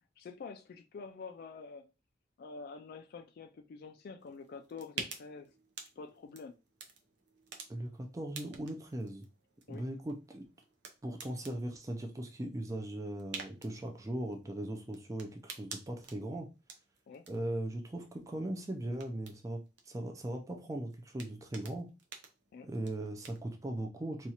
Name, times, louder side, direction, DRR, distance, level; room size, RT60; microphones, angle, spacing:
voice 1, 0.2-1.9 2.4-5.5 6.0-6.6 9.7-9.9 17.1-17.3 22.5-22.7, left 4 dB, 55° left, 0.3 m, -47 dB
sound 1, 4.2-23.5, right 5 dB, 65° right, 0.7 m, -51 dB
voice 2, 7.7-9.3 9.7-10.4 11.0-16.5 17.3-21.9 22.6-24.3, right 1 dB, 20° right, 0.4 m, -39 dB
4.1 x 2.4 x 2.8 m
head